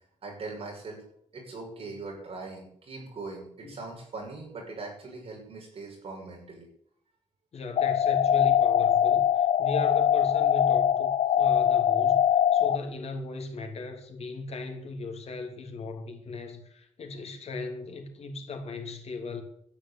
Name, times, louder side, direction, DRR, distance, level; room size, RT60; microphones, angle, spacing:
voice 1, 0.2-1.0 1.3-6.7, right 3 dB, 50° right, 6.5 m, -41 dB
voice 2, 7.5-19.4, left 3 dB, 60° left, 2.7 m, -37 dB
sound 1, 7.8-12.8, left 9 dB, 85° left, 0.8 m, -22 dB
13.0 x 10.0 x 8.5 m
wide cardioid pair, 175°, 12 cm